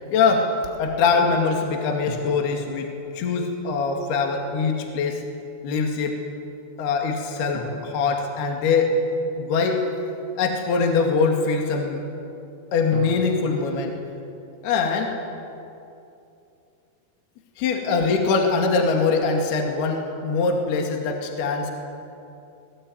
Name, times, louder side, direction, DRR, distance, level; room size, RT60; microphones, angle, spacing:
voice 1, 0.1-0.5 0.8-5.2 5.6-6.1 6.8-9.0 9.4-9.8 10.4-12.1 12.7-14.0 14.6-15.1 17.6-21.7, left 4 dB, 60° left, 2 dB, 3.9 m, -23 dB
sound 1, 2.1-3.7 7.5-9.4 12.9-15.2, left 1 dB, 35° left, 4.6 m, -41 dB
25.5 x 21.5 x 9.3 m, 2.7 s
omnidirectional pair, 5.7 m